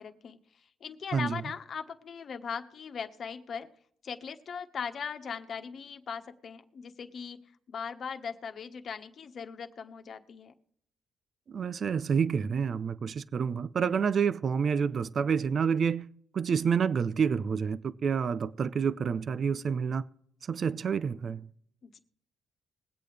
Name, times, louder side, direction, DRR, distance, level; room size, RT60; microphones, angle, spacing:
voice 1, 0.0-3.7 4.0-7.4 7.7-10.5 21.8-22.0, left 6 dB, 55° left, 1.2 m, -39 dB
voice 2, 11.5-16.1 16.3-20.0 20.5-21.5, right 6 dB, 50° right, 0.4 m, -28 dB
21.5 x 8.4 x 3.3 m
cardioid pair, 90°, 0 cm